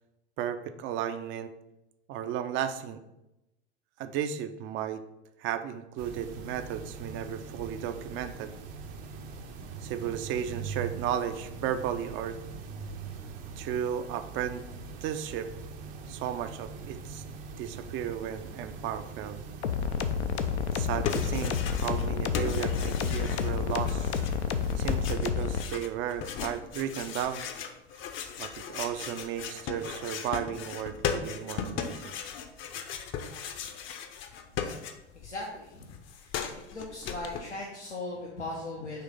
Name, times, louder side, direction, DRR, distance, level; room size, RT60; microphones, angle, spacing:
voice 1, 0.4-1.5 2.1-3.0 4.0-5.0 5.4-8.5 9.8-12.4 13.6-14.6 15.0-15.5 16.1-17.2 17.6-19.4 20.6-24.2 24.8-27.5 28.4-32.1, right 9 dB, 35° right, 10 dB, 0.5 m, -34 dB
sound 1, 6.0-25.2, right 4 dB, 55° right, 0.9 m, -42 dB
sound 2, 19.6-25.6, left 7 dB, 70° left, 0.6 m, -29 dB
sound 3, 20.7-22.1 22.3-35.3 35.6-37.4, left 7 dB, 35° left, 0.7 m, -37 dB
voice 2, 35.1-39.0, left 2 dB, 90° left, -3 dB, 0.9 m, -39 dB
5.8 x 3.2 x 5.1 m, 0.91 s
figure-of-eight pair, 80°, 34 cm